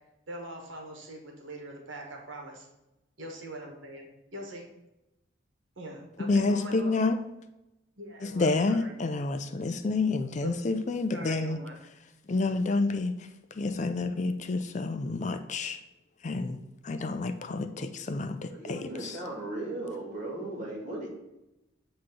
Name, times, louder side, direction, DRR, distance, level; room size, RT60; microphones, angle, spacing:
voice 1, 0.3-2.7 3.2-4.7 5.8-6.9 8.0-8.9 10.4-10.5 11.1-11.8, right 1 dB, 70° right, 1 dB, 1.5 m, -42 dB
voice 2, 6.2-7.2 8.2-11.6 12.3-15.8 16.2-16.6 16.8-19.2, left 3 dB, 35° left, 8 dB, 0.4 m, -29 dB
voice 3, 18.5-21.1, right 2 dB, 40° right, -2 dB, 2.6 m, -37 dB
8.3 x 3.1 x 6.1 m, 0.94 s
head